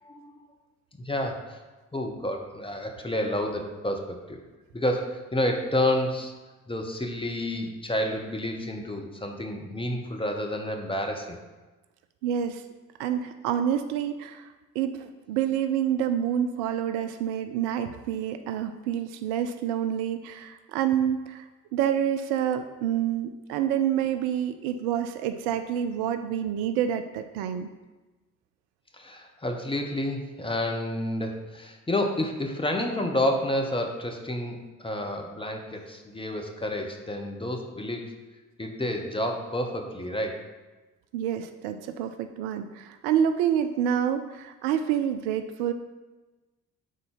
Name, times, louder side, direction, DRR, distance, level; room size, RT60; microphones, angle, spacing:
voice 1, 0.0-0.3 0.9-1.6 1.9-4.4 4.7-6.3 6.7-11.4 28.9-38.1 38.6-40.4, left 1 dB, 10° left, 3 dB, 1.0 m, -30 dB
voice 2, 12.2-12.6 13.0-14.5 14.7-27.7 41.1-45.7, right 9 dB, 60° right, 8 dB, 0.5 m, -28 dB
10.0 x 3.9 x 3.9 m, 1.2 s
figure-of-eight pair, 45°, 43 cm